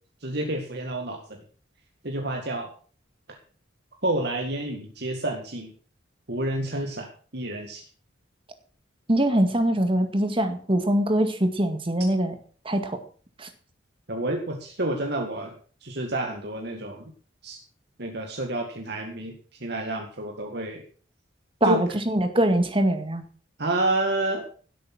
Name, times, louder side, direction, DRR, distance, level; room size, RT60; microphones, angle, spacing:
voice 1, 0.2-1.4 2.0-2.7 4.0-5.7 6.3-7.1 7.3-7.8 14.1-15.5 15.8-17.1 17.4-17.6 18.0-19.3 19.6-20.8 21.6-21.8 23.6-24.5, right 1 dB, 60° right, 2 dB, 2.0 m, -29 dB
voice 2, 9.1-12.4 12.6-13.0 13.4-13.5 21.6-23.3, right 1 dB, 30° right, 7 dB, 2.1 m, -23 dB
17.0 x 8.4 x 6.1 m, 0.42 s
head